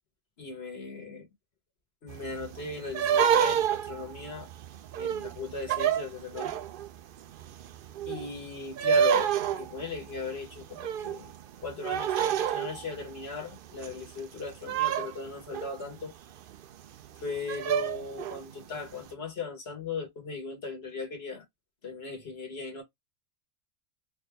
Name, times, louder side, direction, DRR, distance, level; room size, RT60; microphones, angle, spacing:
voice 1, 0.4-1.3 2.0-4.5 5.0-6.6 8.1-11.3 11.6-16.1 17.2-21.4 21.8-22.8, left 4 dB, 50° left, 1.6 m, -38 dB
sound 1, 2.1-6.9 7.3-14.1 14.4-16.0 16.5-16.6 17.0-17.1 17.5-18.6, right 8 dB, 80° right, 0.4 m, -28 dB
3.6 x 2.5 x 3.3 m
omnidirectional pair, 1.5 m